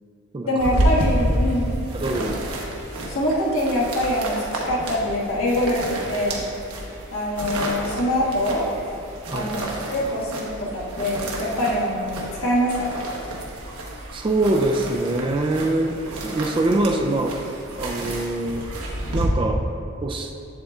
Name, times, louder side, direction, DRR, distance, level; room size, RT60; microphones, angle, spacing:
voice 1, 0.5-1.7 3.1-4.3 4.6-6.4 7.1-8.6 9.3-9.6 9.9-13.0, left 1 dB, 70° left, -6 dB, 1.5 m, -24 dB
sound 1, 0.6-19.3, right 1 dB, 90° right, 1.0 m, -30 dB
voice 2, 1.9-2.4 9.3-9.5 14.1-15.9 16.2-17.4 17.7-18.6 19.1-19.6 20.0-20.3, right 2 dB, 25° right, 3 dB, 0.3 m, -23 dB
7.8 x 7.6 x 2.3 m, 2.7 s
head